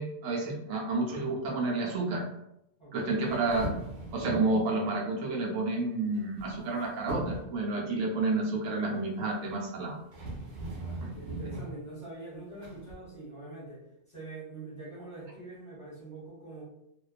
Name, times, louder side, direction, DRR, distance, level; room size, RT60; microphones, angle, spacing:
voice 1, 0.0-2.3 2.9-3.7 4.1-10.0 11.0-11.1, right 3 dB, 85° right, -1 dB, 1.0 m, -30 dB
sound 1, 3.3-4.7 6.1-6.8 7.1-7.6 9.6-9.7 10.1-11.8 12.6-12.9, right 1 dB, 65° right, 1.0 m, -38 dB
voice 2, 10.7-13.8 14.1-16.6, right 2 dB, 30° left, -8 dB, 0.7 m, -44 dB
2.4 x 2.2 x 2.4 m, 0.83 s
omnidirectional pair, 1.4 m